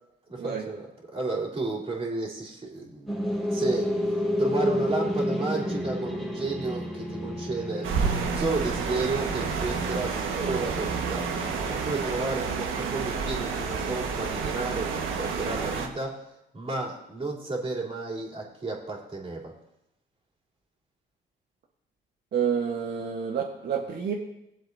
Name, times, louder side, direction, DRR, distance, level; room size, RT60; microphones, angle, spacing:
voice 1, 0.3-0.8 1.1-11.3 11.7-16.2 16.5-19.5, right 3 dB, 30° right, -5 dB, 3.4 m, -32 dB
Scary Cinematic sound, 3.1-12.4, equal, ahead, 2.4 m, -31 dB
Kelvin Bridge Underpass, 7.8-15.9, right 5 dB, 80° right, 1.5 m, -30 dB
voice 2, 22.3-24.1, right 7 dB, 60° right, -1 dB, 1.3 m, -29 dB
20.5 x 7.7 x 2.7 m, 0.84 s
cardioid pair, 90°, 20 cm